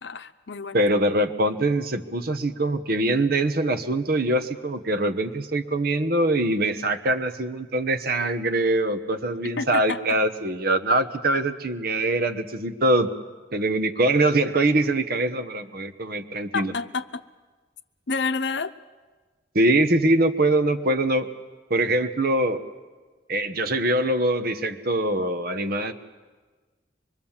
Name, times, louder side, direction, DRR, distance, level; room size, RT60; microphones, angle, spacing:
voice 1, 0.0-0.8 9.6-10.2 16.5-17.2 18.1-18.7, left 4 dB, 70° left, 11 dB, 0.8 m, -29 dB
voice 2, 0.7-13.1 13.5-16.7 19.5-21.3 21.7-22.6 23.3-25.9, right 1 dB, 55° right, 9 dB, 1.2 m, -23 dB
25.0 x 22.0 x 7.3 m, 1.3 s
head